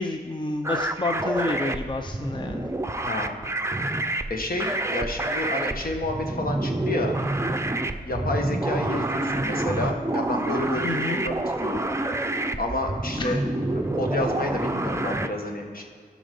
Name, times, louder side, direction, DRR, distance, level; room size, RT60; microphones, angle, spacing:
voice 1, 0.0-2.7 10.8-11.2 13.2-13.4, left 3 dB, 30° left, 5 dB, 0.6 m, -29 dB
sound 1, 0.6-15.3, right 2 dB, 15° right, 0.6 m, -28 dB
voice 2, 3.0-3.4 4.3-7.1 8.0-11.9 12.6-13.4 13.7-15.8, left 1 dB, 60° left, 2 dB, 1.5 m, -30 dB
12.5 x 6.2 x 5.5 m, 2.1 s
cardioid pair, 60°, 17 cm